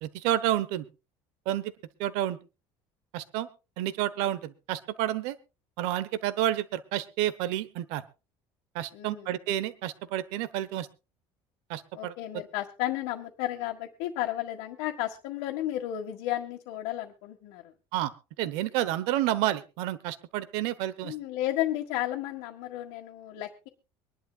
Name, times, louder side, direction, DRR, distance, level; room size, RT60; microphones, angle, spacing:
voice 1, 0.0-0.8 1.5-1.7 2.0-2.4 3.1-3.5 3.8-5.4 5.8-8.0 8.7-10.9 11.7-12.1 17.9-18.1 18.4-21.1, right 13 dB, 80° right, 15 dB, 1.0 m, -30 dB
voice 2, 8.9-9.3 11.9-17.7 21.0-23.7, left 13 dB, 85° left, 0 dB, 1.7 m, -33 dB
24.5 x 11.0 x 2.4 m, 0.30 s
cardioid pair, 160°, 10 cm